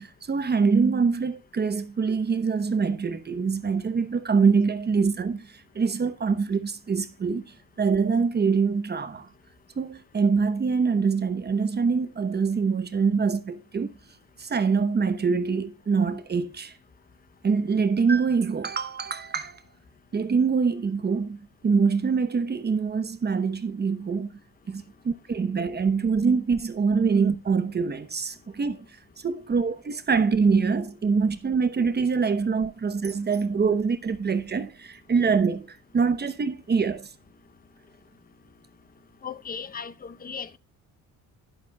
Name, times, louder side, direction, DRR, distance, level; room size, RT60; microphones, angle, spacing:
voice 1, 0.0-9.3 9.8-13.9 14.4-16.7 17.4-19.6 20.1-24.4 24.7-28.8 29.2-37.1, right 5 dB, 30° right, 0.8 m, -24 dB
voice 2, 39.2-40.6, left 6 dB, 25° left, 0.7 m, -37 dB
12.0 x 11.0 x 2.3 m
cardioid pair, 140°, 33 cm